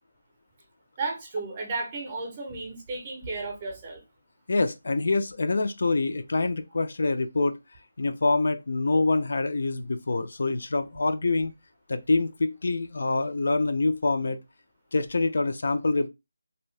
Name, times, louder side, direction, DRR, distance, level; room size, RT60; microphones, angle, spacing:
voice 1, 1.0-4.0, right 3 dB, 15° right, 0.6 m, -33 dB
voice 2, 4.5-7.5 8.0-11.5 11.9-14.4 14.9-16.1, left 3 dB, 50° left, 0.3 m, -25 dB
2.7 x 2.6 x 3.2 m
figure-of-eight pair, 180°, 0 cm